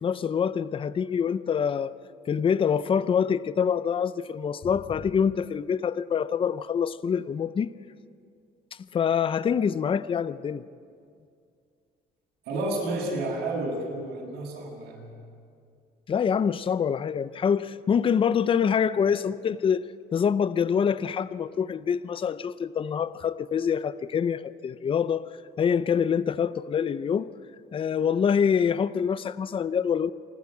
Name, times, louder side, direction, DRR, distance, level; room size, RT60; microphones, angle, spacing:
voice 1, 0.0-1.9 2.3-7.7 8.9-10.6 16.1-19.9 20.1-25.3 25.6-27.3 27.7-30.1, left 7 dB, 30° left, 16 dB, 0.6 m, -25 dB
voice 2, 12.4-15.0, right 2 dB, 80° right, -2 dB, 7.6 m, -31 dB
27.5 x 12.0 x 8.5 m, 2.3 s
cardioid pair, 110°, 17 cm